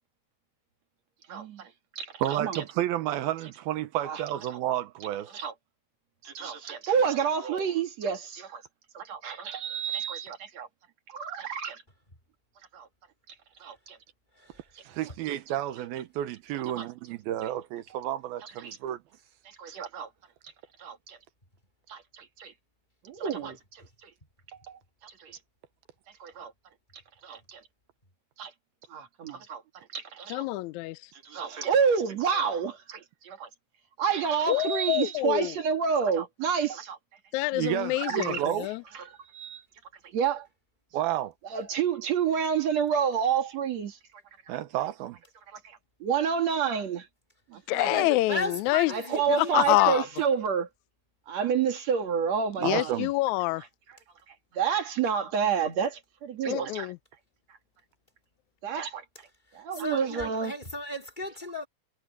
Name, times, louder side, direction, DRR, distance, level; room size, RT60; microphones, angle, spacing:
voice 1, 1.3-1.7 2.0-2.6 4.1-4.2 5.3-5.5 6.2-8.6 8.9-10.7 11.1-11.8 12.7-12.9 13.6-14.0 16.8-16.9 18.6-18.8 19.5-20.1 20.8-21.2 21.9-22.5 23.0-24.1 24.7-25.4 26.2-26.5 27.2-27.6 28.4-28.5 28.9-30.5 31.1-33.5 34.0-37.0 37.9-38.4 39.1-39.6 40.1-40.5 41.5-44.0 44.5-44.6 45.6-47.1 47.5-48.1 48.9-50.7 51.3-52.9 54.5-56.9 58.6-59.0 59.5-60.5, right 7 dB, 50° right, 2.9 m, -29 dB
voice 2, 2.2-5.3 14.8-19.0 37.5-38.7 40.9-41.3 44.5-45.2 47.5-47.6 52.6-53.1, right 12 dB, 85° right, 2.9 m, -31 dB
voice 3, 30.3-31.0 34.5-35.6 37.3-38.8 47.7-48.9 49.3-50.1 52.6-53.6 56.5-57.0, left 19 dB, 85° left, 1.6 m, -26 dB
voice 4, 47.9-50.0 59.7-61.7, left 2 dB, 15° left, 2.9 m, -36 dB
omnidirectional pair, 4.2 m